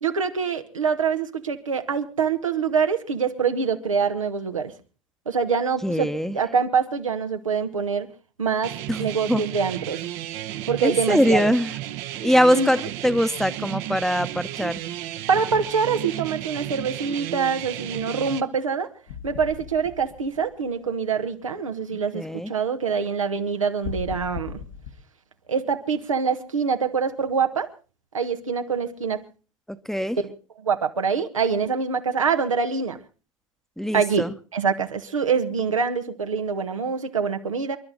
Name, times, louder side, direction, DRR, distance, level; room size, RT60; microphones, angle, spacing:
voice 1, 0.0-4.7 5.2-8.1 8.4-10.0 10.7-11.5 12.5-12.7 15.3-18.9 19.2-24.6 25.5-27.7 28.1-29.2 30.2-30.3 30.6-33.0 33.9-34.3 34.5-37.8, right 6 dB, 90° right, 6 dB, 1.5 m, -25 dB
voice 2, 5.8-6.4 8.9-9.0 9.3-9.4 10.8-11.7 12.2-14.8 22.1-22.5 29.9-30.2 33.8-34.3, equal, ahead, 11 dB, 1.0 m, -22 dB
sound 1, 8.6-18.4, right 14 dB, 55° right, 1.0 m, -33 dB
sound 2, 19.1-20.9 23.8-24.9, left 7 dB, 70° left, 1.7 m, -37 dB
28.0 x 11.5 x 4.0 m, 0.37 s
hypercardioid pair, 85°, 16 cm